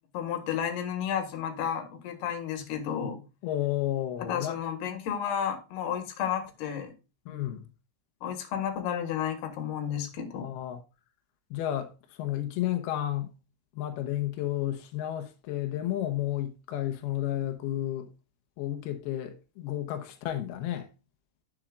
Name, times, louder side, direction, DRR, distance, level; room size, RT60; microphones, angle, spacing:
voice 1, 0.1-3.2 4.2-6.9 8.2-10.4, left 8 dB, 65° left, 3.2 m, -32 dB
voice 2, 3.4-4.6 7.3-7.7 10.3-10.8 11.5-13.3 13.7-18.1 18.6-20.9, left 13 dB, 80° left, 2.2 m, -32 dB
10.5 x 7.1 x 2.4 m
omnidirectional pair, 5.7 m